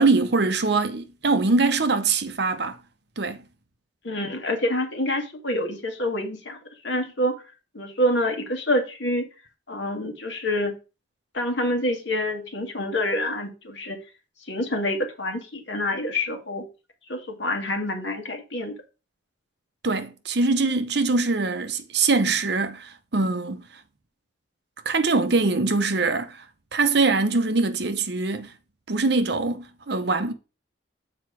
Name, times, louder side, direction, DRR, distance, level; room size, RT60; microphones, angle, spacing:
voice 1, 0.0-2.8 3.2-3.4 19.8-23.6 24.8-26.4 26.7-28.5 28.9-30.3, right 3 dB, 55° right, 0.9 m, -23 dB
voice 2, 4.0-6.6 6.8-7.4 7.7-9.3 9.7-10.7 11.3-14.0 14.5-16.6 17.1-18.8, left 1 dB, 65° left, 1.9 m, -27 dB
7.3 x 4.7 x 4.7 m
head